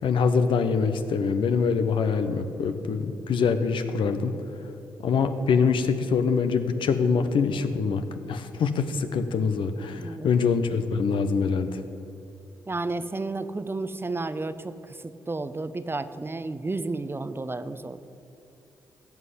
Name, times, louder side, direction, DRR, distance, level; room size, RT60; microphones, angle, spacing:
voice 1, 0.0-4.3 5.0-8.0 8.3-11.8, left 5 dB, 65° left, 8 dB, 0.9 m, -24 dB
voice 2, 9.9-10.3 12.7-18.0, right 3 dB, 25° right, 12 dB, 0.8 m, -32 dB
15.5 x 5.8 x 8.3 m, 2.7 s
hypercardioid pair, 40°, 9 cm